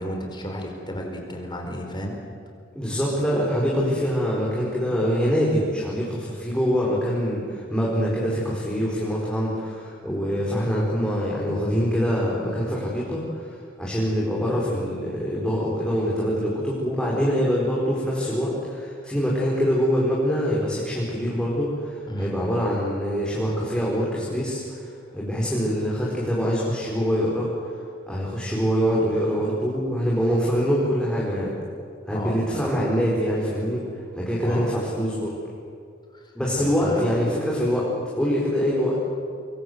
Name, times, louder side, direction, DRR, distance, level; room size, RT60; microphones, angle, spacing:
voice 1, 0.0-2.2 22.1-22.3 32.1-32.6 34.4-34.7 36.1-36.2 36.6-37.1, equal, 25° left, 2 dB, 4.8 m, -32 dB
voice 2, 2.7-24.8 25.1-27.7 28.1-31.5 32.1-33.8 34.1-35.4 36.3-37.9 38.2-38.9, equal, 5° left, -6 dB, 4.6 m, -24 dB
25.5 x 22.5 x 8.0 m, 2.3 s
head